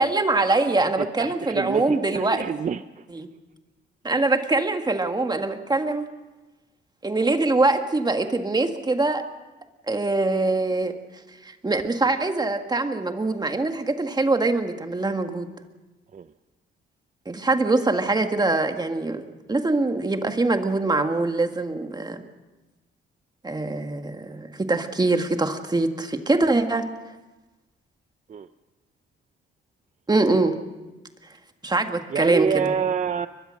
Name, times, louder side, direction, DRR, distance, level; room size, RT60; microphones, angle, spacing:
voice 1, 0.0-2.4 3.1-3.3 4.0-6.1 7.0-9.2 9.9-10.9 11.4-15.5 17.3-19.2 19.5-22.2 23.4-26.9 30.1-30.6 31.6-32.6, right 2 dB, 20° right, 6 dB, 1.8 m, -23 dB
voice 2, 0.8-3.0 16.1-16.3 28.3-28.5 32.1-33.3, right 6 dB, 40° right, 11 dB, 0.7 m, -27 dB
22.5 x 21.5 x 6.5 m, 1.1 s
cardioid pair, 90°, 20 cm